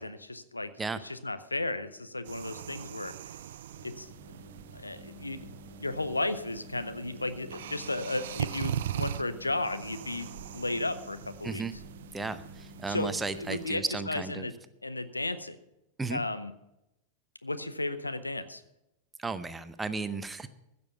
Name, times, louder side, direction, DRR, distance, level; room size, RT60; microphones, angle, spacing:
voice 1, 0.0-0.7 1.0-3.1 3.8-4.1 4.7-5.6 5.8-11.6 12.9-14.5 14.8-15.6 16.1-16.5 17.4-18.6, left 2 dB, 85° left, 11 dB, 0.8 m, -34 dB
sound 1, 2.2-13.8, right 10 dB, 60° right, 0.4 m, -41 dB
sound 2, 3.7-15.2, left 6 dB, 30° left, 2.3 m, -53 dB
voice 2, 11.4-11.7 12.1-14.5 16.0-16.2 19.2-20.5, right 4 dB, 10° right, 12 dB, 0.7 m, -34 dB
15.5 x 6.9 x 6.8 m, 0.88 s
figure-of-eight pair, 90°, 0 cm